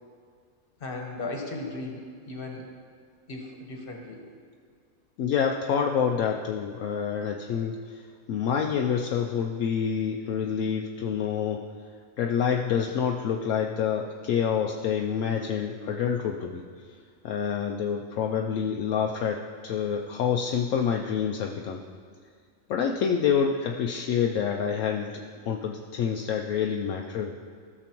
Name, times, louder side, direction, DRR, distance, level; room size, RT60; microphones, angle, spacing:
voice 1, 0.8-2.7 3.3-4.2, left 2 dB, 45° left, 1 dB, 1.3 m, -36 dB
voice 2, 5.2-11.6 12.2-16.6 17.2-21.8 22.7-27.3, left 7 dB, 75° left, 1 dB, 0.9 m, -27 dB
16.0 x 6.8 x 3.0 m, 2.1 s
omnidirectional pair, 1.4 m